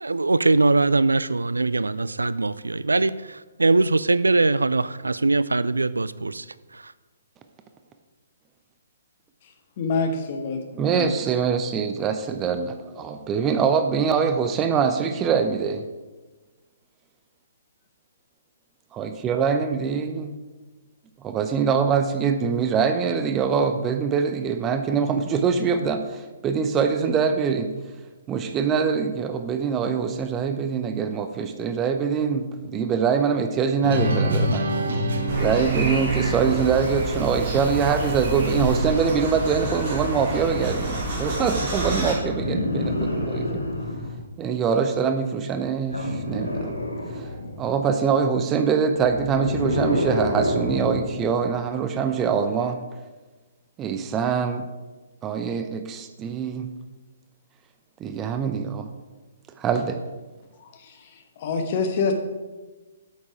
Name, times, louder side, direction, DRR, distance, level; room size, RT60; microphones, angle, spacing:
voice 1, 0.0-3.1 3.6-6.4, right 3 dB, 75° right, 17 dB, 0.3 m, -21 dB
voice 2, 9.8-11.1 61.4-62.1, left 4 dB, 40° left, 5 dB, 1.3 m, -25 dB
voice 3, 10.8-15.8 18.9-20.4 21.2-27.7 28.3-34.7 35.4-43.6 44.4-46.8 47.1-47.3 47.6-52.8 53.8-54.7 55.2-56.7 58.0-58.9 59.6-60.0, right 6 dB, 20° right, 8 dB, 0.6 m, -24 dB
sound 1, 33.8-38.8, right 1 dB, 55° right, 1.3 m, -28 dB
sound 2, 35.3-42.1, right 1 dB, 35° right, 3.0 m, -28 dB
sound 3, 42.2-44.2 45.9-47.6 48.9-51.2 52.6-52.7, left 1 dB, 80° left, 1.7 m, -28 dB
8.4 x 7.2 x 4.8 m, 1.2 s
figure-of-eight pair, 125°, 0 cm